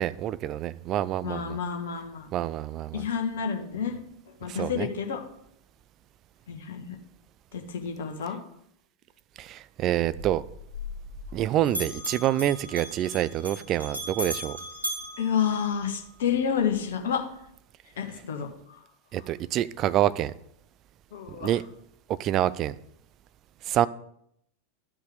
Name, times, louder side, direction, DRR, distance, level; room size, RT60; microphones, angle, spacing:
voice 1, 0.0-1.6 2.3-3.0 4.5-4.9 9.4-10.4 11.3-14.6 19.1-20.3 21.4-21.6 22.2-22.7 23.7-23.9, right 12 dB, 35° right, 16 dB, 0.4 m, -27 dB
voice 2, 1.2-2.3 2.9-4.0 4.4-5.2 6.5-7.0 7.5-8.4 15.2-17.2 18.0-18.5 21.1-21.6, left 7 dB, 60° left, 4 dB, 1.5 m, -29 dB
Bell, 10.0-11.4 11.6-16.1, equal, 85° right, 2.4 m, -37 dB
12.0 x 5.4 x 5.0 m, 0.73 s
figure-of-eight pair, 90°, 0 cm